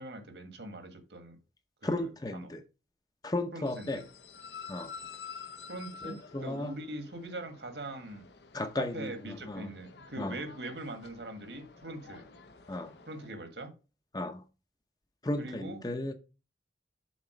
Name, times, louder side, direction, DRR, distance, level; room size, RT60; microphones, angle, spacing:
voice 1, 0.0-1.4 1.8-2.5 3.5-4.1 5.7-8.3 8.8-12.3 13.1-13.7 15.4-15.8, right 2 dB, 80° right, 6 dB, 1.7 m, -42 dB
voice 2, 1.8-2.6 3.2-4.0 4.7-4.9 6.0-6.7 8.5-9.7 10.2-10.4 12.7-12.9 14.1-14.4 15.2-16.1, left 1 dB, 20° left, 8 dB, 0.7 m, -35 dB
sound 1, 3.7-13.3, left 6 dB, 80° left, 0.9 m, -50 dB
7.3 x 4.2 x 5.1 m, 0.31 s
head